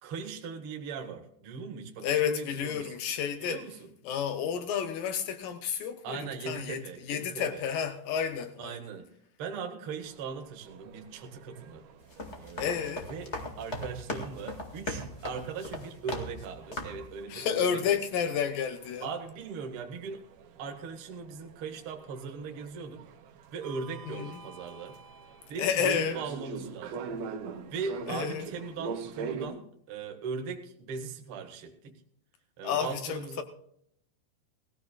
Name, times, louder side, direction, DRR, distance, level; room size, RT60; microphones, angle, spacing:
voice 1, 0.0-2.9 3.4-3.9 6.0-7.6 8.6-9.1 9.4-11.8 12.4-17.8 19.0-20.2 20.6-23.1 23.5-25.0 25.5-27.2 27.7-32.0 32.6-33.4, right 5 dB, 55° right, 1.5 m, -39 dB
voice 2, 2.0-3.6 4.0-8.8 12.6-13.1 17.3-19.1 24.1-24.4 25.6-26.2 28.1-28.5 32.6-33.4, left 8 dB, 85° left, 1.9 m, -31 dB
sound 1, 10.0-29.5, right 5 dB, 80° right, 3.4 m, -44 dB
sound 2, 12.0-16.5 16.7-17.1, left 1 dB, 65° left, 0.6 m, -38 dB
19.5 x 16.0 x 2.4 m
omnidirectional pair, 5.1 m